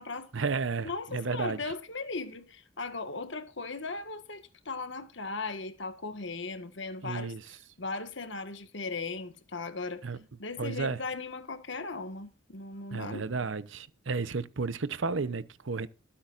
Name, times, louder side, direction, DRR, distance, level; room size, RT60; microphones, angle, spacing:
voice 1, 0.3-1.7 7.0-7.6 10.0-10.2 10.6-11.0 12.9-15.9, right 4 dB, 75° right, 0.8 m, -33 dB
voice 2, 0.8-7.3 7.8-10.0 10.4-13.5, left 3 dB, 65° left, 1.6 m, -38 dB
22.5 x 8.7 x 2.5 m
head